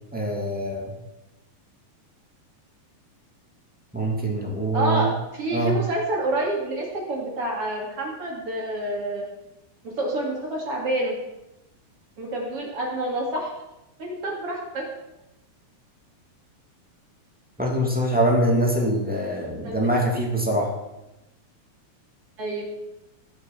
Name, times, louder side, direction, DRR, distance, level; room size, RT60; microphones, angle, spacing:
voice 1, 0.1-0.9 3.9-5.1 5.5-5.8 17.6-20.7, right 1 dB, 5° right, -2 dB, 1.9 m, -23 dB
voice 2, 4.7-9.2 10.0-11.1 12.2-13.5 14.0-14.9 19.6-19.8 22.4-22.7, right 1 dB, 45° right, -2 dB, 3.1 m, -28 dB
18.0 x 6.6 x 5.9 m, 0.95 s
omnidirectional pair, 4.1 m